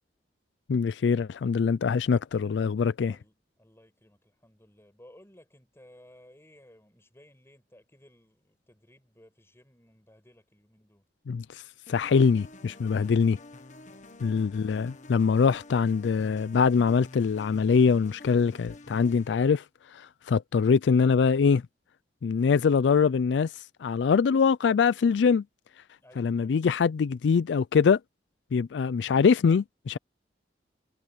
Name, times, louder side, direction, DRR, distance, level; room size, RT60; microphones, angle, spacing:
voice 1, 0.7-3.2 11.3-11.6 11.9-13.4 14.2-19.6 19.9-21.6 22.2-25.4 26.2-28.0 28.5-30.0, left 5 dB, 80° left, 0.4 m, -23 dB
voice 2, 2.8-11.0 13.8-14.2 26.0-26.6, left 1 dB, 15° left, 6.8 m, -57 dB
sound 1, 11.9-19.5, left 2 dB, 45° left, 1.2 m, -49 dB
head